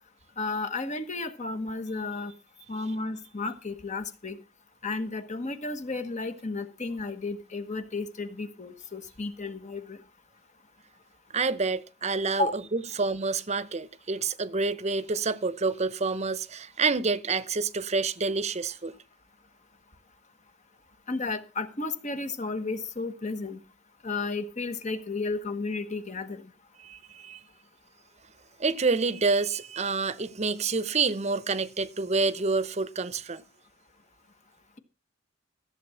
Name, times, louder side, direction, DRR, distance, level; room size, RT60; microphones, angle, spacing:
voice 1, 0.4-2.3 2.7-4.4 4.8-10.0 12.4-12.5 21.1-23.6 24.0-26.5, left 3 dB, 40° left, 1.3 m, -33 dB
voice 2, 11.3-18.9 26.8-27.4 28.6-33.4, right 4 dB, 35° right, 0.8 m, -28 dB
14.5 x 7.7 x 5.6 m
head